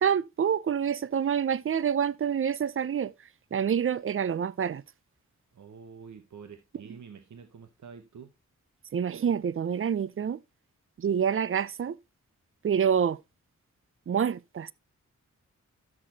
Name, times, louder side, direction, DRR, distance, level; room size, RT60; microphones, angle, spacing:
voice 1, 0.0-3.1 3.5-4.8 8.9-10.4 11.0-12.0 12.6-13.2 14.1-14.7, right 8 dB, 45° right, 0.5 m, -27 dB
voice 2, 5.5-8.3, right 6 dB, 70° right, 1.0 m, -47 dB
12.5 x 6.7 x 2.8 m
cardioid pair, 70°, 31 cm